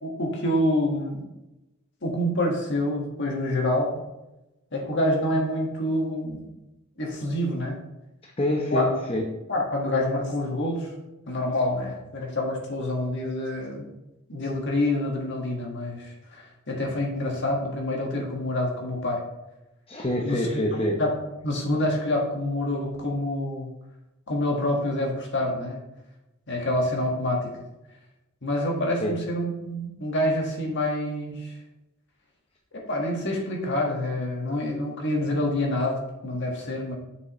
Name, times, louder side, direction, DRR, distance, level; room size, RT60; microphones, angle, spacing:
voice 1, 0.0-1.2 2.0-4.0 4.7-6.4 7.0-7.8 8.7-8.9 9.5-10.9 11.3-13.9 14.3-19.2 20.2-20.6 21.0-21.1 21.4-23.7 24.3-25.8 26.5-27.5 28.4-31.5 32.7-36.9, left 1 dB, 60° left, 0 dB, 1.7 m, -27 dB
voice 2, 8.4-9.3 19.9-21.0 29.0-29.2, left 1 dB, 30° left, 0 dB, 0.8 m, -26 dB
6.9 x 6.6 x 3.1 m, 0.95 s
head